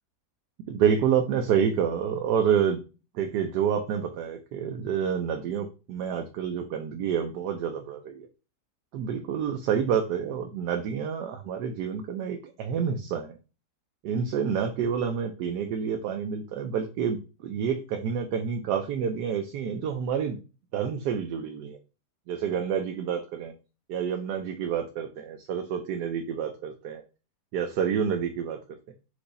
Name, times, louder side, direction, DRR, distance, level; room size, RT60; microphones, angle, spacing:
voice 1, 0.7-2.8 3.1-8.3 8.9-13.3 14.0-17.2 17.4-20.4 20.7-21.8 22.3-23.5 23.9-27.0 27.5-28.6, right 7 dB, 80° right, 4 dB, 1.2 m, -28 dB
4.7 x 2.6 x 3.9 m, 0.32 s
omnidirectional pair, 1.8 m